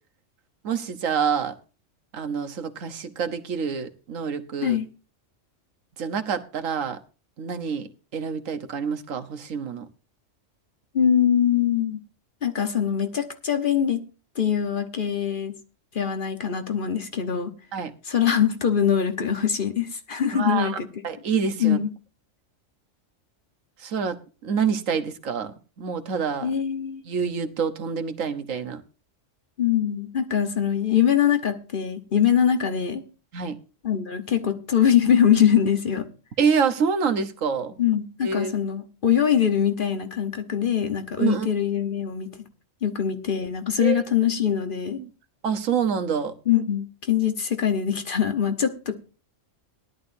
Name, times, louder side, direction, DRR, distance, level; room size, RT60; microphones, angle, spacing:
voice 1, 0.6-1.5 2.1-4.8 6.0-7.0 7.4-9.9 17.7-17.9 20.3-20.8 21.0-21.8 23.8-24.2 24.4-26.5 27.1-28.8 33.3-33.6 36.4-37.7 38.2-38.5 41.2-41.5 43.8-44.0 45.0-45.1 45.4-46.3, right 6 dB, 90° right, 1.5 m, -27 dB
voice 2, 10.9-12.0 12.4-14.0 14.4-15.6 15.9-17.5 18.1-20.9 21.6-21.9 26.4-27.0 29.6-33.0 33.8-36.1 37.8-42.3 42.8-45.0 46.5-49.0, left 9 dB, 45° left, 1.2 m, -23 dB
18.0 x 11.0 x 2.6 m
omnidirectional pair, 1.3 m